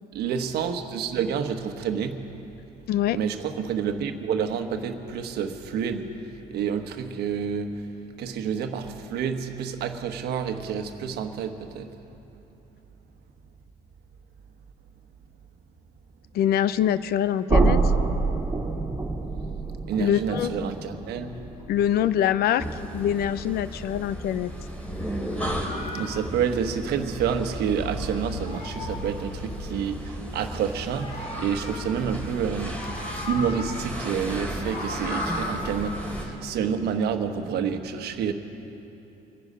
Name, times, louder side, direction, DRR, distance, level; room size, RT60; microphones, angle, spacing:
voice 1, 0.1-2.2 3.1-6.1 6.5-7.8 8.2-12.0 19.9-21.4 25.9-38.3, right 7 dB, 70° right, 6 dB, 1.2 m, -29 dB
voice 2, 2.9-3.2 16.3-17.8 20.0-20.5 21.7-22.7 22.9-24.5, left 10 dB, 65° left, 15 dB, 0.6 m, -24 dB
sound 1, 17.5-23.4, right 3 dB, 20° right, 2.1 m, -27 dB
sound 2, 22.6-36.2, equal, 10° left, 3.4 m, -34 dB
Meow, 25.2-27.9 28.2-29.8 30.7-32.3 32.6-34.0 34.4-35.7, left 2 dB, 45° left, 1.9 m, -38 dB
25.0 x 10.0 x 5.5 m, 2.9 s
cardioid pair, 110°, 17 cm